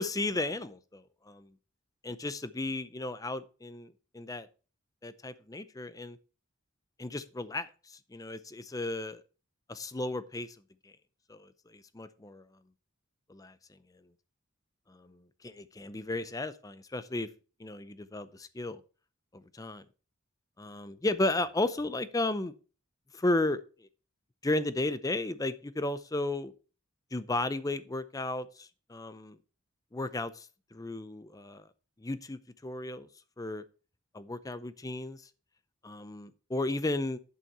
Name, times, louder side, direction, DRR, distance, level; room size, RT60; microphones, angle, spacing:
voice 1, 0.0-1.5 2.0-4.5 5.0-6.2 7.0-9.2 9.7-10.6 10.8-10.9 11.3-12.4 13.3-13.5 14.9-17.3 17.6-18.8 19.3-19.9 20.6-22.5 23.1-23.9 24.4-26.5 27.1-29.4 29.9-31.7 32.0-33.1 33.4-33.6 34.1-35.2 35.8-37.2, left 2 dB, 15° left, 14 dB, 0.5 m, -34 dB
11.0 x 5.7 x 4.2 m, 0.36 s
head